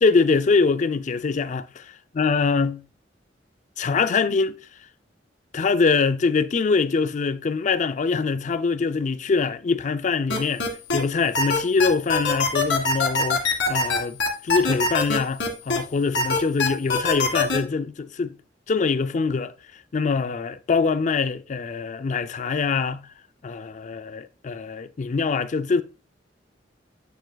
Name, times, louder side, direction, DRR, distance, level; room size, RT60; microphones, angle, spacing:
voice 1, 0.0-2.8 3.8-4.6 5.5-10.6 10.9-18.3 18.7-19.5 19.9-23.1 23.4-25.8, left 4 dB, 45° left, 0.4 m, -23 dB
sound 1, 10.3-11.0 11.3-15.8 16.1-17.6, left 4 dB, 90° left, 1.7 m, -22 dB
8.2 x 6.5 x 2.3 m
head